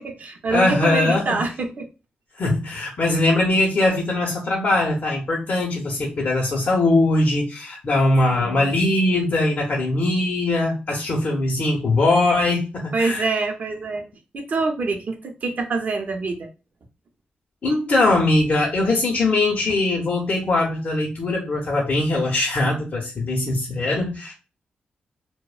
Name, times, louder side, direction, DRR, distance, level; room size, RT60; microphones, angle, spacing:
voice 1, 0.0-1.9 8.3-8.7 12.9-14.0 14.3-16.5, right 3 dB, 55° right, 4 dB, 0.6 m, -26 dB
voice 2, 0.5-1.4 2.3-13.2 17.6-24.3, left 2 dB, 50° left, -2 dB, 0.6 m, -21 dB
2.7 x 2.0 x 2.3 m, 0.30 s
wide cardioid pair, 105°, 3 cm